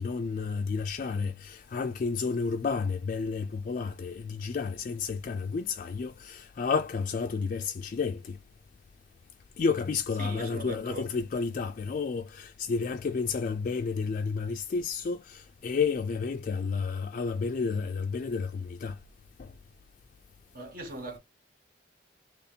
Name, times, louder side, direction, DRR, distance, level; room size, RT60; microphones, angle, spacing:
voice 1, 0.0-8.4 9.6-19.0 19.4-19.5, left 5 dB, 45° left, 0.3 m, -31 dB
voice 2, 10.2-11.2 20.5-21.2, right 1 dB, 55° right, 1.3 m, -39 dB
2.9 x 2.7 x 4.1 m
head